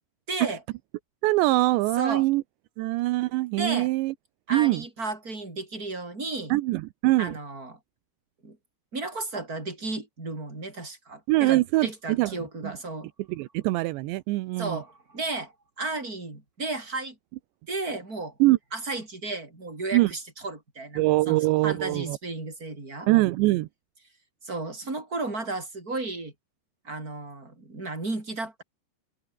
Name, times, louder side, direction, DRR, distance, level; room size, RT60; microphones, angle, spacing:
voice 1, 0.3-0.6 2.0-2.2 3.6-3.9 4.5-6.5 7.2-7.8 8.4-8.6 8.9-13.1 14.6-17.1 17.7-18.4 18.7-23.1 24.4-26.3 26.8-28.6, right 3 dB, 20° right, 6.6 m, -34 dB
voice 2, 1.2-2.4 2.8-4.1 4.5-4.8 6.5-7.3 11.3-12.3 12.6-12.7 13.3-14.8 18.4-18.6 19.9-20.1 21.0-22.2 23.1-23.7, right 19 dB, 80° right, 3.0 m, -23 dB
open air
omnidirectional pair, 5.1 m